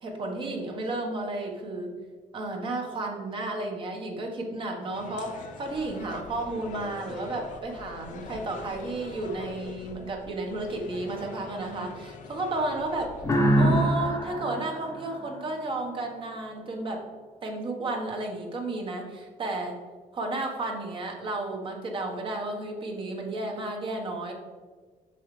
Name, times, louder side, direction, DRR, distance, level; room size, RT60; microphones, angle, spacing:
voice 1, 0.0-1.9 2.3-13.1 13.5-17.0 17.4-19.8 20.1-24.3, right 2 dB, 35° right, 1 dB, 1.3 m, -32 dB
sound 1, 4.9-13.9, left 4 dB, 65° left, 0.8 m, -43 dB
sound 2, 13.2-15.9, right 1 dB, 20° left, 1.0 m, -25 dB
7.6 x 6.4 x 3.3 m, 1.5 s
cardioid pair, 170°, 14 cm